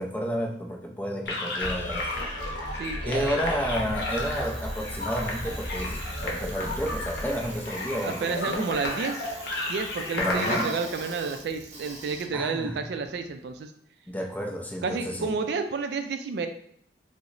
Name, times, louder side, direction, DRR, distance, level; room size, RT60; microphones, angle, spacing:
voice 1, 0.0-2.2 3.0-8.7 10.1-10.8 12.3-12.9 14.1-15.4, equal, 10° left, 1 dB, 0.4 m, -31 dB
sound 1, 1.3-10.7, left 1 dB, 65° left, 0.7 m, -33 dB
sound 2, 1.6-8.2, equal, 40° left, 0.9 m, -37 dB
voice 2, 2.8-3.4 8.0-9.3 9.7-13.7 14.8-16.5, right 4 dB, 65° right, 7 dB, 0.3 m, -31 dB
Bicycle, 3.5-13.5, right 2 dB, 40° right, 0.7 m, -44 dB
2.9 x 2.1 x 3.7 m, 0.67 s
head